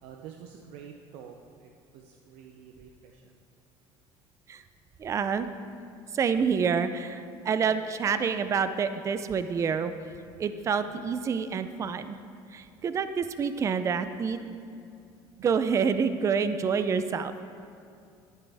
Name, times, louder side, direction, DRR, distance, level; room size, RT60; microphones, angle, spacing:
voice 1, 0.0-3.4, right 7 dB, 70° right, 2 dB, 0.7 m, -48 dB
voice 2, 5.0-5.5 6.1-9.9 10.4-12.2 12.5-14.4 15.4-17.3, right 6 dB, 30° right, 11 dB, 0.5 m, -27 dB
13.0 x 9.5 x 3.5 m, 2.5 s
cardioid pair, 125°, 11 cm